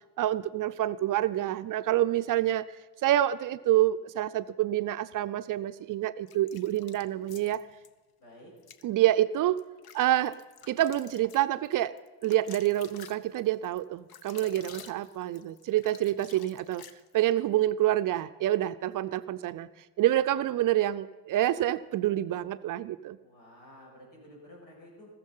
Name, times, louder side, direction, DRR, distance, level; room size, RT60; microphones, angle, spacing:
voice 1, 0.2-2.7 3.0-7.6 8.8-9.6 9.9-10.4 10.7-12.0 12.2-16.8 17.1-19.7 20.0-23.2, right 13 dB, 45° right, 12 dB, 0.6 m, -27 dB
sound 1, 6.3-7.9 8.6-8.9 9.4-17.4, left 8 dB, 50° left, 1.0 m, -50 dB
voice 2, 8.2-8.5 23.2-25.1, left 1 dB, 75° left, -2 dB, 6.9 m, -51 dB
14.5 x 14.0 x 5.6 m, 1.2 s
hypercardioid pair, 70°, 48 cm